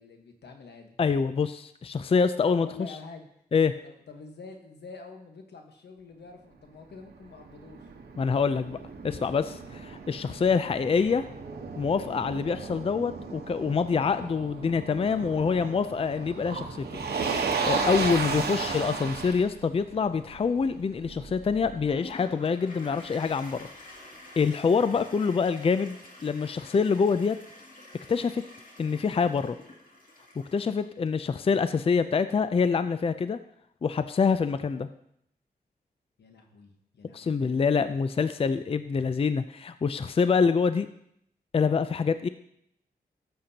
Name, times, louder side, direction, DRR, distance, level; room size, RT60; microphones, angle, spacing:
voice 1, 0.0-1.0 2.4-3.3 3.8-7.9 36.2-38.1, left 4 dB, 85° left, 4 dB, 1.3 m, -47 dB
voice 2, 1.0-2.7 3.5-3.7 8.2-8.8 9.0-11.3 11.8-16.8 17.3-23.7 24.4-26.0 26.2-27.4 28.1-28.4 28.8-29.6 30.5-33.4 33.8-34.9 37.1-40.9 41.5-42.3, left 5 dB, 35° left, 12 dB, 0.4 m, -26 dB
Motor vehicle (road), 6.9-22.0, right 5 dB, 70° right, 1.1 m, -35 dB
Toilet flush, 21.9-31.1, left 2 dB, 55° left, 2.3 m, -48 dB
13.0 x 7.5 x 2.8 m, 0.73 s
cardioid pair, 75°, 17 cm